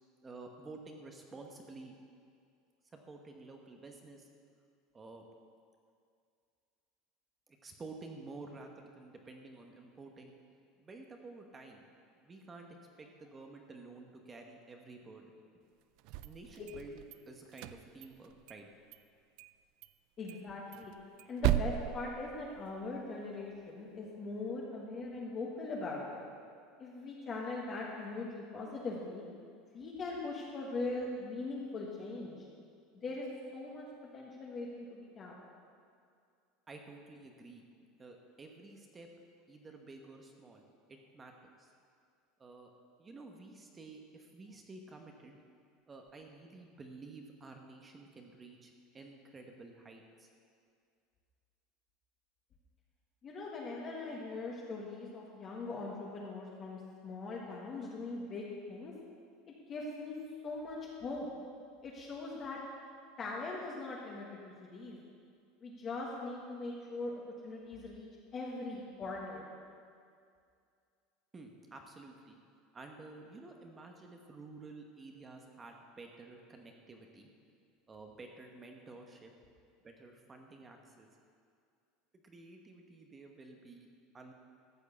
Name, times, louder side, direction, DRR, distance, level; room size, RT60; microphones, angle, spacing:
voice 1, 0.2-1.9 2.9-4.3 4.9-5.2 7.5-10.3 10.8-11.8 12.2-15.3 16.2-18.7 36.7-37.6 38.0-39.1 39.5-41.3 41.6-41.7 42.4-42.7 43.0-45.4 45.9-50.3 71.3-72.4 72.7-77.3 77.9-79.3 79.8-81.1 82.1-83.9 84.1-84.3, right 3 dB, 15° right, 3 dB, 1.0 m, -51 dB
sound 1, 16.0-17.2 17.5-18.6 18.9-19.0 19.4-19.5 19.8-19.9 20.3-22.9, right 14 dB, 55° right, 0.4 m, -36 dB
voice 2, 20.2-20.9 21.3-26.2 26.8-29.2 29.7-32.3 32.9-33.2 33.5-33.8 34.1-35.3 53.2-58.9 59.7-60.2 60.4-61.3 61.8-62.6 63.2-65.0 65.6-69.5, left 3 dB, 30° left, -3 dB, 1.6 m, -41 dB
13.5 x 6.5 x 8.3 m, 2.3 s
supercardioid pair, 155°, 0 cm